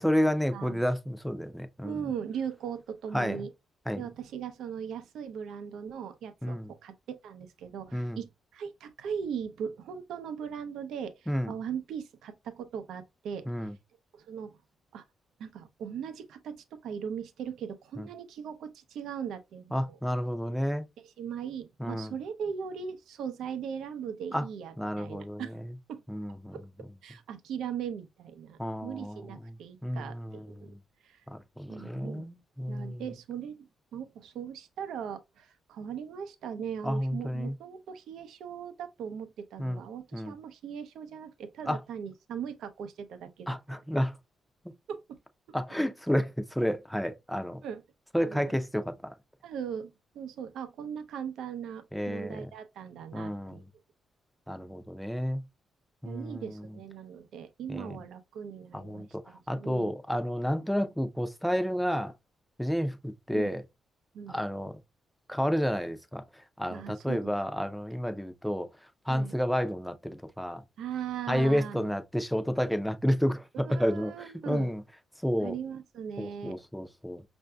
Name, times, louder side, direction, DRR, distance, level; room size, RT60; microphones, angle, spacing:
voice 1, 0.0-2.0 3.1-3.4 3.9-4.0 6.4-6.7 7.9-8.2 11.3-11.5 13.5-13.7 18.0-18.1 19.7-20.9 21.8-22.1 24.3-24.4 24.8-25.5 26.1-26.6 28.6-29.6 29.8-30.8 31.3-33.0 36.8-37.5 39.6-39.8 40.1-40.3 41.7-41.8 43.5-44.1 45.5-47.6 48.1-49.1 51.9-52.5 53.1-53.6 54.5-55.4 56.0-56.6 57.7-58.0 58.7-59.2 59.5-62.1 62.6-63.6 64.3-64.8 65.3-66.2 66.6-68.7 69.1-70.6 71.3-73.4 73.8-74.1 74.5-74.8 75.2-75.6 76.2-77.2, equal, ahead, 0.4 m, -30 dB
voice 2, 0.5-0.8 1.8-3.5 4.0-6.9 7.2-13.5 14.1-14.6 14.9-15.0 15.4-20.0 21.0-25.6 25.9-26.0 26.5-26.6 27.0-30.7 31.0-31.2 31.7-32.3 32.7-33.7 33.9-43.8 44.9-45.2 47.6-47.8 48.2-48.5 49.4-53.6 56.0-59.9 63.3-63.5 64.1-64.4 66.7-67.2 69.1-69.3 70.8-71.9 73.5-74.7 75.4-76.6, right 7 dB, 90° right, 0.6 m, -39 dB
5.6 x 2.6 x 2.2 m
cardioid pair, 145°, 0 cm